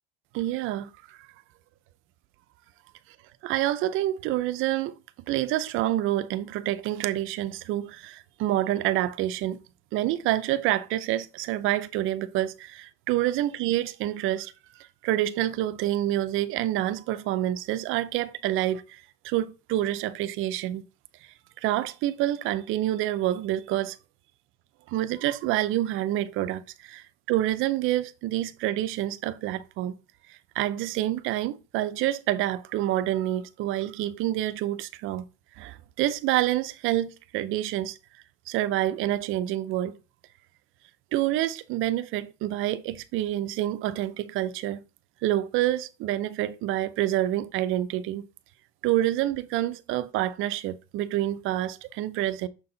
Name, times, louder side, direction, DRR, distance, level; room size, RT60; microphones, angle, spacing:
voice 1, 0.3-1.2 3.4-4.9 5.3-9.6 9.9-14.5 15.0-20.8 21.6-24.0 24.9-29.9 30.3-35.2 35.6-38.0 38.5-40.0 41.1-44.8 45.2-48.3 48.8-52.5, right 14 dB, 45° right, 0.5 m, -27 dB
6.3 x 4.2 x 3.8 m
cardioid pair, 165°, 29 cm